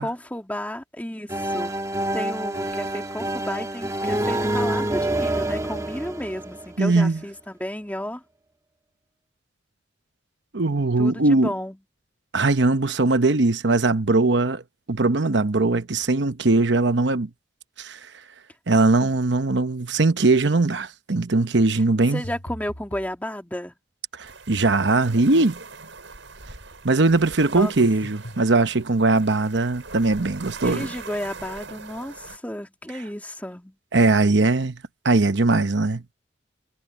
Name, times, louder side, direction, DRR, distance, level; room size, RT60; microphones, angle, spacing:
voice 1, 0.0-1.7 2.1-8.2 11.0-11.8 19.0-19.1 22.1-23.7 27.6-27.7 30.6-33.7, left 1 dB, 10° left, 2.4 m, -32 dB
sound 1, 1.3-7.0, right 1 dB, 15° right, 1.4 m, -27 dB
voice 2, 6.8-7.2 10.5-11.5 12.3-14.6 14.9-17.3 17.8-18.0 18.7-22.2 24.5-25.6 26.8-30.9 33.9-34.8 35.0-36.0, right 3 dB, 70° right, 0.9 m, -20 dB
sound 2, 22.2-23.1 27.6-28.4, equal, 75° left, 7.7 m, -39 dB
sound 3, 24.2-32.4, right 4 dB, 85° right, 6.4 m, -41 dB
head